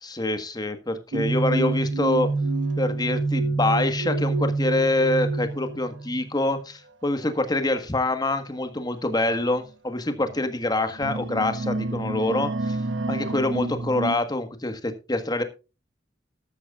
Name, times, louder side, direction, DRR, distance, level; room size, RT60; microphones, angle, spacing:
voice 1, 0.0-2.3 2.8-12.8 13.1-15.4, left 2 dB, 20° left, 9 dB, 1.5 m, -25 dB
sound 1, 1.1-6.3 7.1-7.4 8.5-8.6 9.4-9.5 10.2-10.6 10.9-14.2, right 2 dB, 80° right, 1.2 m, -27 dB
13.5 x 12.0 x 2.4 m, 0.30 s
head